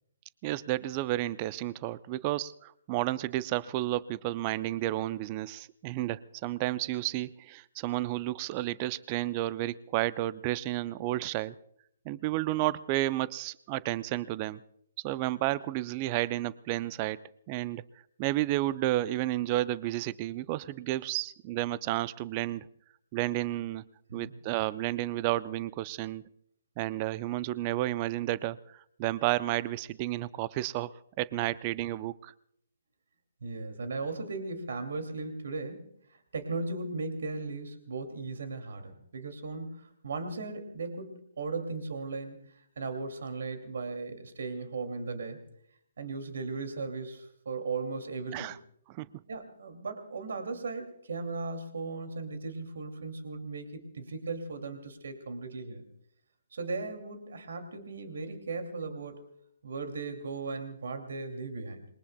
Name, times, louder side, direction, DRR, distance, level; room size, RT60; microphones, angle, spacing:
voice 1, 0.4-11.6 12.1-14.6 15.0-17.2 17.5-17.8 18.2-22.7 23.1-23.8 24.1-26.2 26.8-30.9 31.2-32.3 48.3-48.6 48.9-49.1, right 16 dB, 35° right, 18 dB, 0.5 m, -31 dB
voice 2, 33.4-45.4 46.0-48.5 49.3-55.9 56.5-59.2 59.6-61.9, right 3 dB, 65° right, 7 dB, 2.5 m, -37 dB
27.5 x 22.0 x 2.3 m, 0.70 s
figure-of-eight pair, 130°, 0 cm